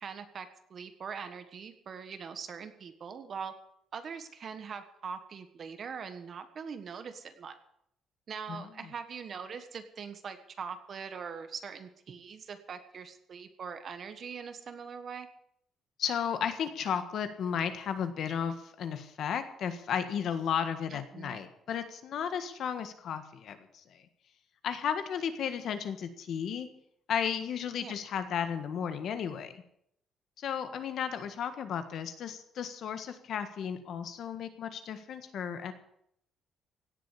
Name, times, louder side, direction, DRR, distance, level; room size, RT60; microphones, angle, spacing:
voice 1, 0.0-3.5 3.9-7.6 8.3-15.3 20.9-21.4 27.8-28.0, right 6 dB, 35° right, 9 dB, 1.4 m, -42 dB
voice 2, 8.5-8.9 16.0-24.0 24.6-26.7 27.1-29.6 30.4-35.7, left 8 dB, 55° left, 9 dB, 1.6 m, -34 dB
17.0 x 7.7 x 8.3 m, 0.73 s
cardioid pair, 170°, 0 cm